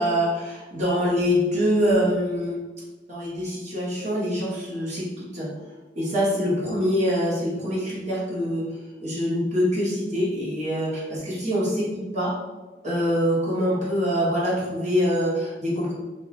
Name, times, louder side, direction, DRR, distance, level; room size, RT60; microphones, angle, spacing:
voice 1, 0.0-2.6 3.1-5.5 5.9-8.6 9.0-11.9 12.1-12.4 12.8-15.9, equal, 45° right, -6 dB, 1.4 m, -24 dB
3.3 x 2.9 x 4.2 m, 1.2 s
head